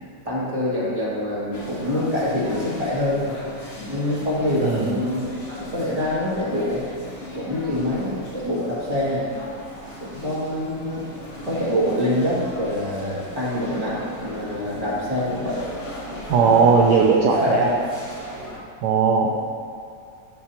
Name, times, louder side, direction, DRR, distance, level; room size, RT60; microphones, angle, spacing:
voice 1, 0.2-3.2 3.8-5.2 5.5-6.8 7.2-9.3 10.0-11.0 11.4-15.6 16.4-16.7 17.3-17.7 19.2-19.3, left 1 dB, 20° right, -8 dB, 2.3 m, -25 dB
lunchtime cafeteria Kantine mittags, 1.5-18.6, equal, 50° left, 2.0 m, -38 dB
voice 2, 4.6-5.0 16.3-17.7 18.8-19.3, right 5 dB, 70° right, 0 dB, 1.2 m, -18 dB
12.0 x 6.9 x 2.9 m, 2.3 s
omnidirectional pair, 1.9 m